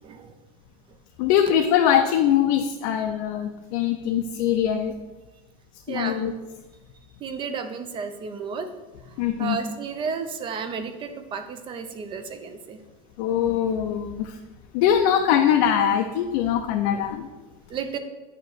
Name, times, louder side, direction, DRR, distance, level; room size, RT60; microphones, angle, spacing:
voice 1, 0.0-0.4 5.9-6.2 7.2-8.7 9.4-12.8 17.7-18.0, right 6 dB, 30° right, 8 dB, 0.5 m, -32 dB
voice 2, 1.2-4.9 5.9-6.3 9.2-9.6 13.2-14.4 14.7-17.3, left 9 dB, 65° left, 4 dB, 0.5 m, -22 dB
8.8 x 3.0 x 6.4 m, 1.2 s
cardioid pair, 165°, 18 cm